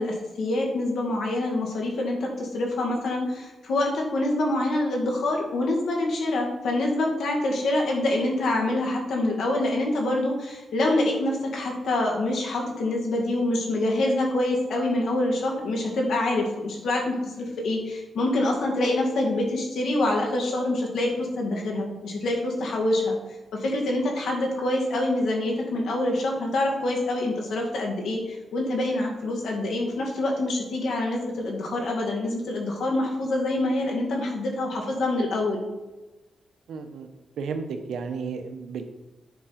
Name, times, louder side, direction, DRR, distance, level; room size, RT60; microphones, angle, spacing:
voice 1, 0.0-23.2 23.5-35.6, left 1 dB, 80° left, 0 dB, 2.2 m, -26 dB
voice 2, 36.7-37.1 37.4-38.8, right 5 dB, 90° right, 7 dB, 0.9 m, -33 dB
9.4 x 4.8 x 5.9 m, 1.1 s
cardioid pair, 90°, 0 cm